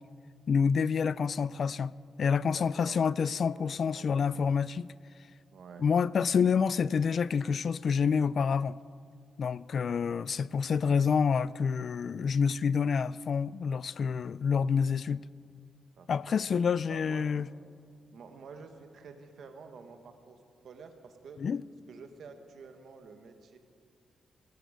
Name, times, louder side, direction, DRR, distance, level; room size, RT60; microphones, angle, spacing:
voice 1, 0.5-1.9 2.2-4.9 5.8-8.8 9.4-15.2 16.1-17.5 21.4-21.6, left 6 dB, 55° left, 0.3 m, -28 dB
voice 2, 2.4-3.0 3.3-4.4 5.5-5.9 10.8-11.2 16.0-16.4 16.9-17.4 18.1-20.4 20.6-21.4 21.9-23.6, right 5 dB, 70° right, 1.6 m, -50 dB
18.5 x 15.0 x 5.1 m
cardioid pair, 115°, 0 cm